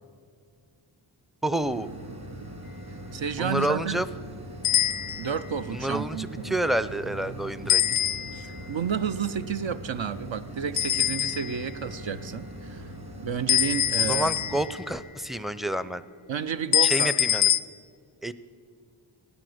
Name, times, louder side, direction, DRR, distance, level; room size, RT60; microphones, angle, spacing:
voice 1, 1.4-1.9 3.4-4.1 5.7-7.8 14.1-16.0 16.8-17.5 18.2-18.3, right 1 dB, ahead, 14 dB, 0.4 m, -28 dB
sound 1, 1.6-14.6, right 1 dB, 50° right, 3.0 m, -41 dB
voice 2, 2.9-4.1 5.2-6.6 7.8-8.0 8.3-12.9 13.2-14.3 16.3-17.1, right 7 dB, 70° right, 10 dB, 0.6 m, -31 dB
sound 2, 4.6-5.4 7.7-8.6 10.8-11.7 13.5-14.9 16.7-17.6, left 11 dB, 80° left, 0.5 m, -24 dB
17.0 x 9.7 x 7.8 m, 2.1 s
wide cardioid pair, 80°, 48 cm